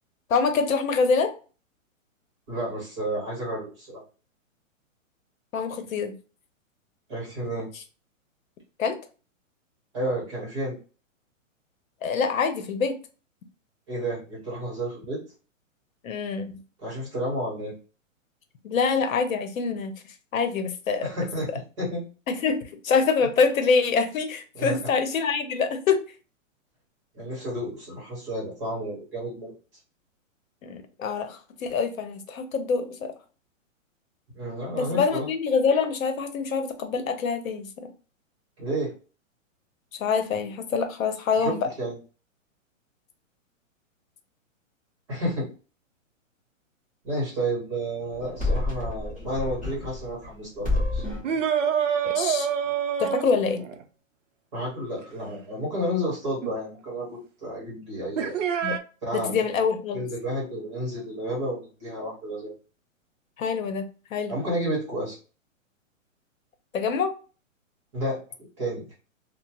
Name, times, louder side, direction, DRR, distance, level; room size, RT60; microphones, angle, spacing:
voice 1, 0.3-1.3 5.5-6.1 8.8-9.0 12.0-13.0 16.0-16.5 18.6-20.0 20.3-21.1 22.3-26.0 30.6-33.1 34.7-37.7 40.0-41.6 52.0-52.5 53.0-53.6 58.6-58.8 59.1-60.0 63.4-64.3 66.7-67.1, left 5 dB, 90° left, 9 dB, 0.7 m, -25 dB
voice 2, 2.5-4.0 7.1-7.7 9.9-10.7 13.9-15.2 16.8-17.7 21.0-21.5 21.8-22.0 24.5-24.8 27.1-29.5 34.3-35.3 38.6-38.9 41.4-42.0 45.1-45.5 47.0-51.0 54.5-57.1 57.4-58.4 59.0-59.4 59.9-62.5 64.3-65.2 67.9-68.9, right 1 dB, 25° right, -4 dB, 0.9 m, -31 dB
sound 1, 48.1-50.3 50.6-51.3, left 2 dB, 10° left, 0.8 m, -29 dB
sound 2, 51.2-53.8 56.4-56.5 58.2-58.8, right 8 dB, 65° right, 0.5 m, -26 dB
2.9 x 2.0 x 2.8 m, 0.36 s
hypercardioid pair, 175°, 39 cm